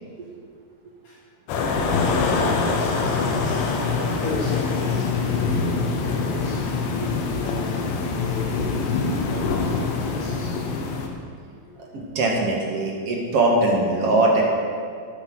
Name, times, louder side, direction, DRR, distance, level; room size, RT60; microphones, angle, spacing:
voice 1, 1.0-10.7 11.7-11.8, left 2 dB, 60° left, -6 dB, 3.6 m, -35 dB
sound 1, 1.5-11.1, left 4 dB, 85° left, 3.4 m, -24 dB
voice 2, 11.9-14.4, right 2 dB, 55° right, -1 dB, 1.8 m, -21 dB
14.0 x 9.0 x 6.3 m, 2.2 s
omnidirectional pair, 5.0 m